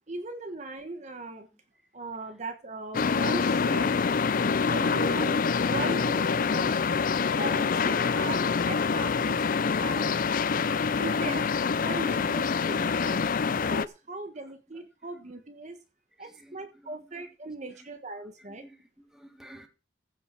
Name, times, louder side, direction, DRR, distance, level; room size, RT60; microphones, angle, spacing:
voice 1, 0.1-1.5 1.9-4.0 4.5-5.4 5.6-6.7 7.4-10.2 11.0-11.5 11.8-13.3 13.7-15.8 16.2-18.6, right 2 dB, 40° right, 7 dB, 1.4 m, -39 dB
sound 1, 2.9-13.9, left 5 dB, 50° left, 0.5 m, -26 dB
voice 2, 16.2-17.9 18.4-19.7, right 1 dB, 5° right, 5 dB, 1.9 m, -55 dB
15.0 x 5.5 x 6.1 m, 0.30 s
head